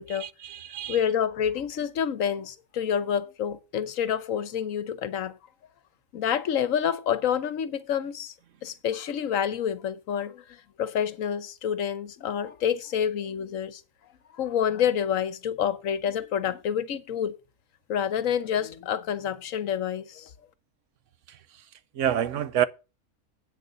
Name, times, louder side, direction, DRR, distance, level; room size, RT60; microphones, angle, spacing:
voice 1, 0.1-1.0 22.0-22.7, right 10 dB, 65° right, 0.9 m, -27 dB
voice 2, 0.9-5.3 6.1-8.3 8.6-13.8 14.4-17.3 17.9-20.3, left 8 dB, 75° left, 1.2 m, -28 dB
8.5 x 6.5 x 6.8 m
omnidirectional pair, 1.4 m